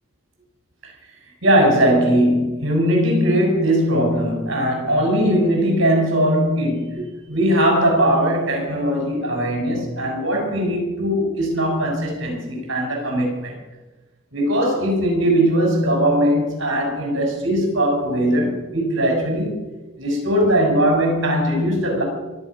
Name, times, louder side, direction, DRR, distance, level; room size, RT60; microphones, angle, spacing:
voice 1, 1.4-13.6 14.3-19.6 20.0-22.0, equal, 60° right, 1 dB, 6.4 m, -20 dB
23.5 x 9.4 x 6.2 m, 1.1 s
head